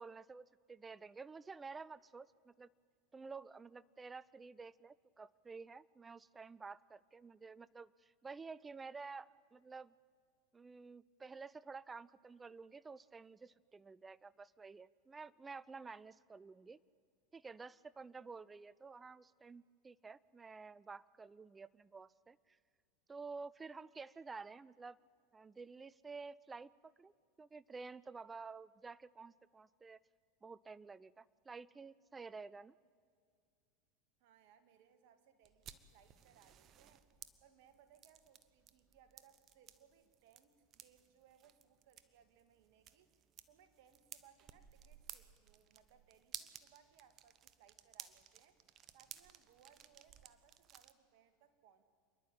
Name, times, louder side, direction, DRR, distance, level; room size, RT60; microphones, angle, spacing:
voice 1, 0.0-2.7 3.1-9.9 10.5-16.8 17.3-22.6 23.1-25.0 25.3-27.1 27.4-30.0 30.4-32.7, right 4 dB, 15° right, 21 dB, 0.4 m, -51 dB
voice 2, 34.2-37.1 37.4-43.1 43.5-48.6 48.9-51.8, right 8 dB, 65° right, 9 dB, 1.8 m, -68 dB
sound 1, 35.4-50.9, right 10 dB, 40° right, 1.0 m, -57 dB
27.5 x 11.5 x 8.8 m, 2.2 s
hypercardioid pair, 105°, 0 cm